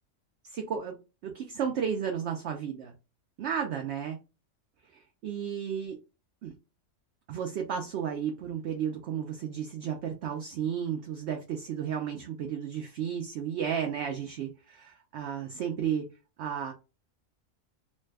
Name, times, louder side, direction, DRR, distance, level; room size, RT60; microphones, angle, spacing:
voice 1, 0.5-1.0 1.2-2.9 3.4-4.2 5.2-6.0 6.4-6.5 7.3-16.1 16.4-16.7, right 8 dB, 65° right, 3 dB, 0.7 m, -33 dB
3.2 x 2.1 x 3.3 m, 0.30 s
omnidirectional pair, 1.4 m